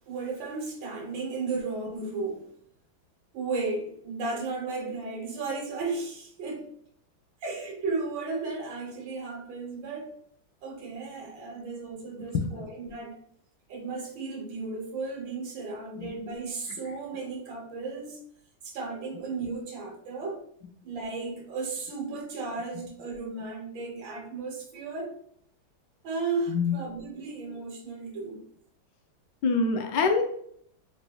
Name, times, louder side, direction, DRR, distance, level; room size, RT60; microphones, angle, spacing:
voice 1, 0.1-2.5 3.3-6.7 7.4-10.1 10.6-13.2 13.7-18.2 18.6-20.4 20.8-25.2 26.0-28.4, right 3 dB, 70° right, 1.7 m, -34 dB
voice 2, 29.4-30.2, left 4 dB, 70° left, 1.1 m, -25 dB
4.2 x 3.3 x 2.2 m
omnidirectional pair, 2.2 m